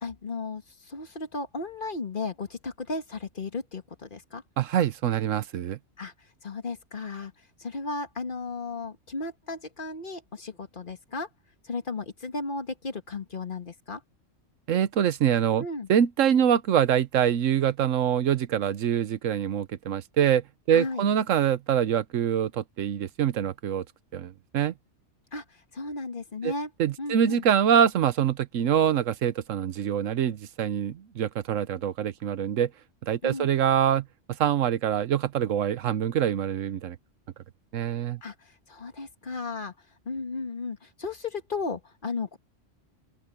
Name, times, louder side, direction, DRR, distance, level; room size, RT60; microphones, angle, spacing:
voice 1, 0.0-4.4 6.0-6.1 6.4-7.3 7.6-11.3 11.6-14.0 15.6-15.9 20.7-21.1 25.3-25.4 25.7-26.7 27.0-27.4 33.2-33.5 38.2-38.3 38.7-39.7 40.1-42.4, left 3 dB, 40° left, 1.9 m, -34 dB
voice 2, 4.6-5.8 14.7-23.8 24.1-24.7 26.4-26.5 26.8-32.7 33.0-34.1 34.4-37.0 37.7-38.2, right 9 dB, 80° right, 1.2 m, -25 dB
open air
omnidirectional pair, 1.3 m